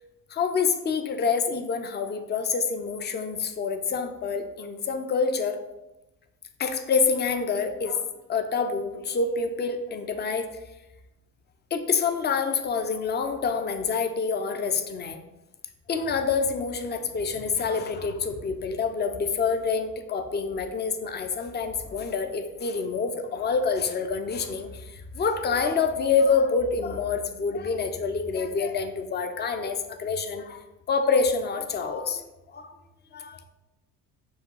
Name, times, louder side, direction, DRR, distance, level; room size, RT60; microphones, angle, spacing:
voice 1, 0.3-5.6 6.6-10.5 11.7-15.2 15.9-30.6 30.9-32.2 32.5-32.7 33.1-33.4, left 5 dB, 25° left, 7 dB, 0.5 m, -27 dB
4.8 x 2.4 x 4.6 m, 1.0 s
hypercardioid pair, 70°, 41 cm